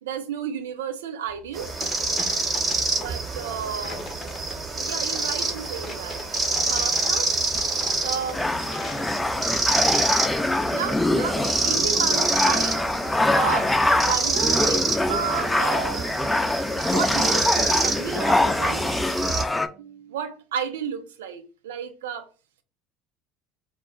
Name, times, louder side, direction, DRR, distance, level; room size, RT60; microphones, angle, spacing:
voice 1, 0.0-1.7 3.0-4.0 4.7-6.2 6.7-7.3 8.0-8.4 10.7-12.8 13.3-16.1 16.8-19.0 19.7-22.3, right 8 dB, 85° right, 0.4 m, -32 dB
sound 1, 1.3-9.9, left 4 dB, 40° left, 0.7 m, -41 dB
sound 2, 1.5-19.4, right 3 dB, 30° right, 1.0 m, -27 dB
sound 3, 8.3-19.7, left 2 dB, 10° left, 0.3 m, -24 dB
2.1 x 2.1 x 3.7 m
hypercardioid pair, 70°, 0 cm